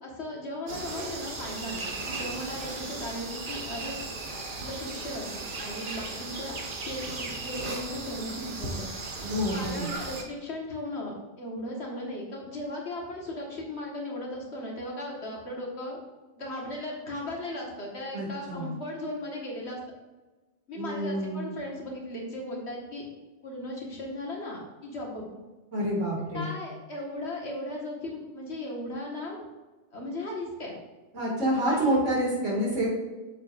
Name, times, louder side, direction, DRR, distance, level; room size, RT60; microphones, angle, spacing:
voice 1, 0.0-4.0 4.6-6.6 6.8-8.9 9.5-16.0 16.4-19.8 20.7-23.0 23.4-25.3 26.3-29.4 29.9-30.8 31.7-32.0, left 1 dB, 65° left, -2 dB, 1.9 m, -37 dB
sound 1, 0.7-10.2, right 3 dB, 45° right, 1.1 m, -36 dB
voice 2, 9.2-9.9 18.1-18.8 20.7-21.5 25.7-26.5 31.1-32.9, equal, 85° right, -4 dB, 2.7 m, -28 dB
7.3 x 7.2 x 2.6 m, 1.2 s
omnidirectional pair, 1.2 m